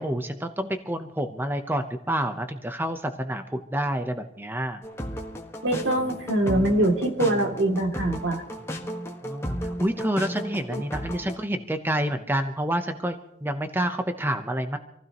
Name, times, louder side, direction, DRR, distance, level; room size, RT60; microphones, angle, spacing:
voice 1, 0.0-4.8 9.2-14.8, right 1 dB, 10° right, 7 dB, 0.8 m, -28 dB
sound 1, 4.8-11.4, equal, 15° left, 1.5 m, -34 dB
voice 2, 5.6-8.4 10.7-10.8, right 1 dB, 80° right, 2 dB, 2.7 m, -23 dB
26.5 x 16.0 x 3.0 m, 0.79 s
head